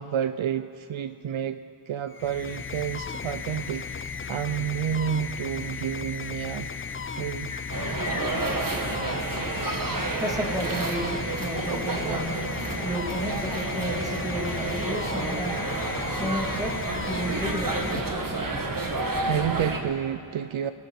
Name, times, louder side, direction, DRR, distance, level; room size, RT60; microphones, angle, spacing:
voice 1, 0.0-1.6 1.9-6.7 7.1-7.6 18.9-19.0 19.2-20.7, right 9 dB, 75° right, 11 dB, 0.5 m, -30 dB
sound 1, 2.1-18.6, left 5 dB, 30° left, 0.3 m, -35 dB
sound 2, 3.6-14.6, left 3 dB, 80° left, 1.8 m, -47 dB
sound 3, 7.7-19.8, right 2 dB, 40° right, 1.5 m, -30 dB
voice 2, 9.3-9.6 10.2-12.4 12.6-15.6 16.1-16.7 17.0-17.8, right 1 dB, 5° right, 0 dB, 2.1 m, -32 dB
26.0 x 12.0 x 4.5 m, 2.4 s
wide cardioid pair, 80°, 49 cm